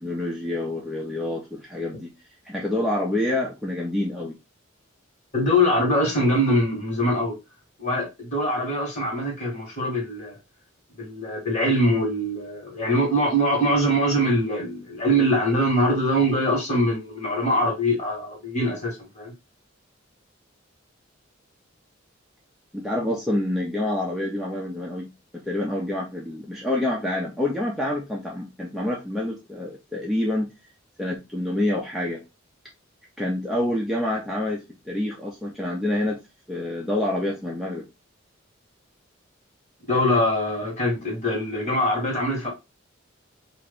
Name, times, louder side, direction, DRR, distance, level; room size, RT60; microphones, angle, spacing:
voice 1, 0.0-2.1 2.5-4.4 22.7-25.1 25.5-30.5 31.0-32.2 33.2-36.2 36.5-37.8, left 1 dB, ahead, 0.6 m, -27 dB
voice 2, 5.3-7.3 7.8-10.4 11.0-19.3 39.9-42.5, equal, 35° left, 1.6 m, -23 dB
3.0 x 2.5 x 3.3 m
head